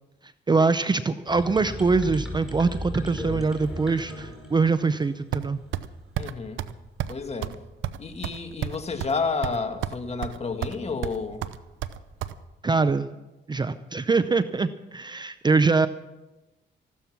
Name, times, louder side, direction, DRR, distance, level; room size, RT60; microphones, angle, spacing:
voice 1, 0.5-5.6 12.6-13.1 13.5-15.9, right 4 dB, 20° right, 13 dB, 0.6 m, -23 dB
sound 1, 1.3-5.2, equal, 5° right, 5.1 m, -36 dB
sound 2, 5.3-5.9 6.2-6.3 6.6-6.7 7.0-7.2 7.4-7.6 7.8-9.2 9.4-10.0 10.2-10.8 11.0-12.3, right 12 dB, 75° right, 0.7 m, -30 dB
voice 2, 6.2-6.6 7.1-7.5 8.0-11.4, left 4 dB, 30° left, 6 dB, 1.8 m, -30 dB
15.0 x 13.0 x 6.0 m, 1.0 s
cardioid pair, 90°, 20 cm